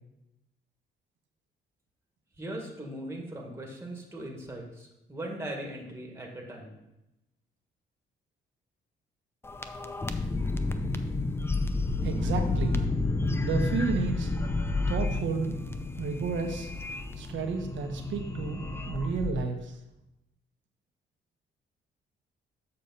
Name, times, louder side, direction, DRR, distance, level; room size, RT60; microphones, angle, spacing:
voice 1, 2.4-6.8, right 1 dB, 10° right, 0 dB, 1.9 m, -39 dB
sound 1, 9.4-19.3, left 3 dB, 10° left, 0.6 m, -31 dB
voice 2, 12.0-12.8 13.4-14.3 14.9-15.6 16.0-16.7 17.2-19.8, right 5 dB, 70° right, 4 dB, 1.2 m, -32 dB
7.1 x 6.5 x 4.1 m, 0.91 s
cardioid pair, 90°, 20 cm